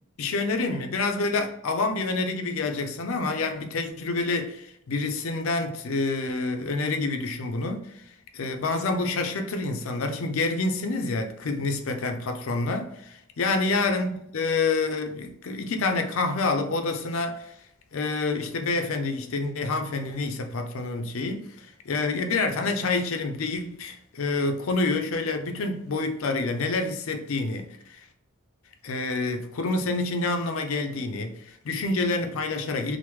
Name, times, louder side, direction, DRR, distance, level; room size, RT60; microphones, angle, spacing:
voice 1, 0.2-8.0 8.3-17.5 17.9-28.0 28.8-33.0, left 3 dB, 65° left, 0.5 m, -28 dB
3.0 x 2.0 x 3.3 m
head